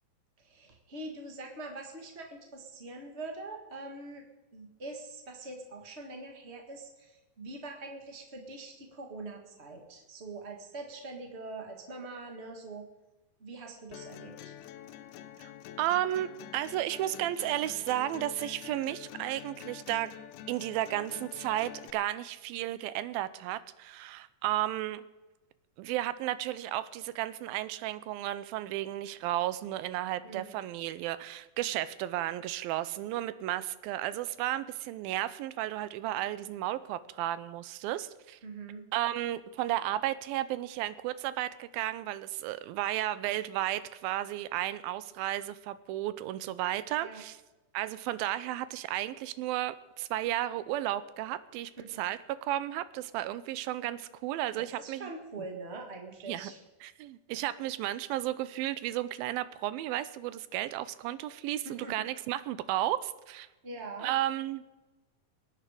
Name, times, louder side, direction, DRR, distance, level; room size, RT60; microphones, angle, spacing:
voice 1, 0.4-4.2 4.5-12.9 13.4-14.6 30.2-30.6 38.4-38.9 47.0-47.2 51.8-52.0 54.6-56.6 61.6-62.1 63.6-64.1, right 2 dB, 65° right, 2 dB, 0.6 m, -43 dB
sound 1, 13.9-21.9, left 11 dB, 75° left, 1.9 m, -47 dB
voice 2, 15.8-20.1 20.5-25.1 25.8-38.4 38.9-47.4 47.7-51.7 52.0-55.1 56.3-56.5 56.8-63.5 64.0-64.6, right 14 dB, 90° right, 15 dB, 2.4 m, -33 dB
21.5 x 8.9 x 4.9 m, 1.1 s
omnidirectional pair, 4.1 m